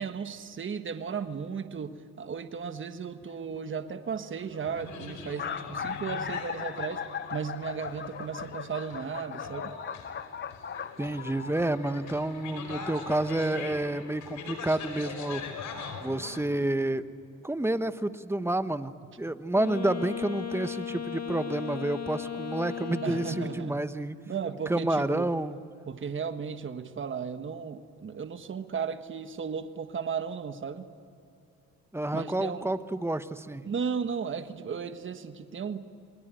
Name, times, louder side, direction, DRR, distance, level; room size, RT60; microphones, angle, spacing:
voice 1, 0.0-7.0 7.3-9.7 23.0-23.7 24.3-25.3 25.9-30.8 32.1-32.7 33.6-35.8, right 6 dB, 40° right, 8 dB, 1.4 m, -35 dB
sound 1, 3.3-3.6 4.4-4.5 4.7-4.8 5.2-11.5, left 7 dB, 35° left, 0.9 m, -38 dB
sound 2, 4.4-16.4, left 5 dB, 75° left, 4.7 m, -42 dB
voice 2, 11.0-15.4 16.0-17.0 17.4-24.2 24.7-25.6 31.9-33.6, right 1 dB, 10° right, 11 dB, 1.1 m, -29 dB
Wind instrument woodwind instrument, 19.5-23.9, left 8 dB, 60° left, 1.9 m, -36 dB
28.0 x 21.0 x 9.2 m, 2.5 s
cardioid pair, 90°, 30 cm